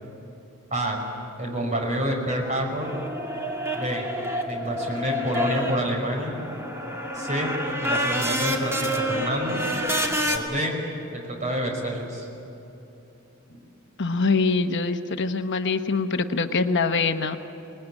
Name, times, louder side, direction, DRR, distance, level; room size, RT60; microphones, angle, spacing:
voice 1, 0.7-1.0 1.4-2.9 3.7-4.0 4.5-6.4 7.1-7.5 7.8-9.6 10.3-10.8 11.1-12.3 13.5-13.6, equal, 35° right, 1 dB, 5.3 m, -28 dB
sound 1, 2.8-10.4, equal, 15° right, 2.2 m, -28 dB
voice 2, 14.0-17.4, left 4 dB, 60° left, 7 dB, 1.0 m, -24 dB
26.0 x 20.0 x 10.0 m, 2.9 s
head